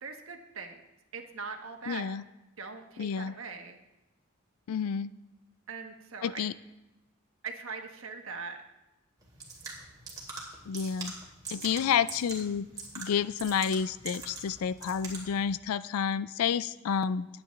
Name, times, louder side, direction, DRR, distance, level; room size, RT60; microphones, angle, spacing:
voice 1, 0.0-0.8 1.1-2.1 2.6-3.8 5.7-6.4 7.4-8.6, right 5 dB, 65° right, 3 dB, 1.3 m, -41 dB
voice 2, 1.9-2.2 3.0-3.3 4.7-5.1 6.2-6.5 10.7-11.1 11.5-12.7 13.0-17.3, left 7 dB, 75° left, 17 dB, 0.3 m, -30 dB
sound 1, 9.2-15.4, right 3 dB, 15° right, 2.3 m, -43 dB
20.5 x 9.0 x 3.2 m, 0.97 s
head